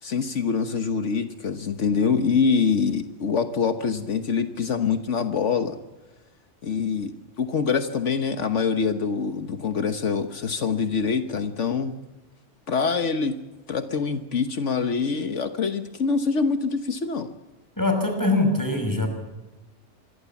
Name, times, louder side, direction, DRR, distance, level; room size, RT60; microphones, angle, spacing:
voice 1, 0.0-5.8 6.6-11.9 12.7-13.4 13.7-17.3, left 5 dB, 75° left, 8 dB, 1.5 m, -25 dB
voice 2, 17.8-19.1, left 2 dB, 15° left, 5 dB, 6.0 m, -22 dB
27.0 x 22.5 x 7.2 m, 1.1 s
omnidirectional pair, 1.3 m